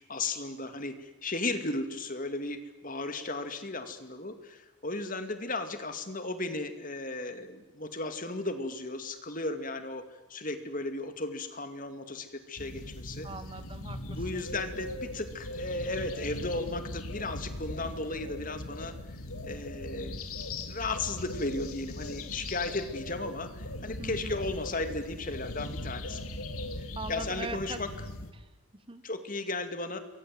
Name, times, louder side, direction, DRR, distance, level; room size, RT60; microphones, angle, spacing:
voice 1, 0.1-10.0 10.3-13.3 14.1-19.2 19.4-20.3 20.7-26.2 26.8-27.9 29.0-30.0, left 2 dB, 40° left, 8 dB, 2.3 m, -35 dB
sound 1, 12.6-28.3, left 1 dB, 80° left, 2.6 m, -39 dB
voice 2, 13.2-14.5 24.0-24.4 26.9-27.8 28.3-29.0, right 3 dB, 25° right, 11 dB, 1.3 m, -41 dB
28.5 x 23.0 x 7.8 m, 1.1 s
head